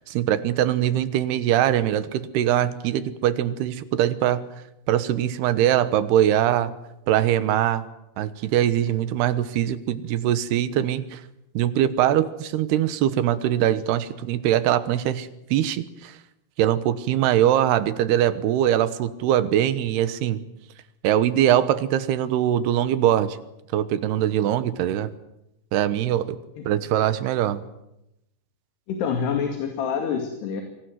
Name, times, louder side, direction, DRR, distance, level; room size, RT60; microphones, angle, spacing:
voice 1, 0.0-4.5 4.9-6.7 7.1-7.8 8.2-11.2 11.5-16.2 16.6-20.4 21.0-23.4 23.7-25.1 25.7-26.4 26.7-27.6, right 11 dB, 80° right, 14 dB, 3.1 m, -22 dB
voice 2, 28.9-30.6, left 7 dB, 75° left, 4 dB, 4.4 m, -26 dB
25.0 x 18.0 x 9.4 m, 0.86 s
omnidirectional pair, 4.9 m